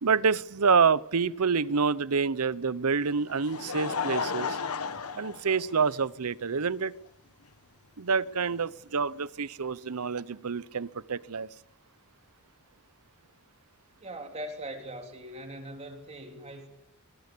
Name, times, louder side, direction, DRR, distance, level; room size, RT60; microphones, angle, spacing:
voice 1, 0.0-4.6 5.1-6.9 8.0-11.5, right 5 dB, 85° right, 18 dB, 0.8 m, -27 dB
Laughter, 3.0-6.2 7.1-7.2 8.6-8.7, left 5 dB, 80° left, 1.3 m, -34 dB
voice 2, 14.0-16.7, right 1 dB, 30° right, 4 dB, 3.6 m, -41 dB
23.5 x 18.5 x 8.5 m, 0.83 s
head